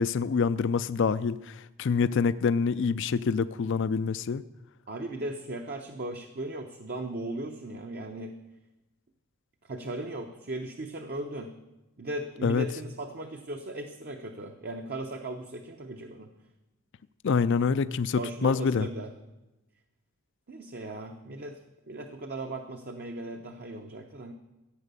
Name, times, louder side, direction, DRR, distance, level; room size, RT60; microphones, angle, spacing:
voice 1, 0.0-4.4 12.4-12.7 17.2-18.9, left 5 dB, 55° left, 15 dB, 0.4 m, -26 dB
voice 2, 4.9-8.3 9.6-11.5 12.0-16.3 18.1-19.1 20.5-21.6 21.9-24.3, right 2 dB, 45° right, 4 dB, 0.8 m, -37 dB
14.5 x 9.0 x 6.8 m, 1.0 s
head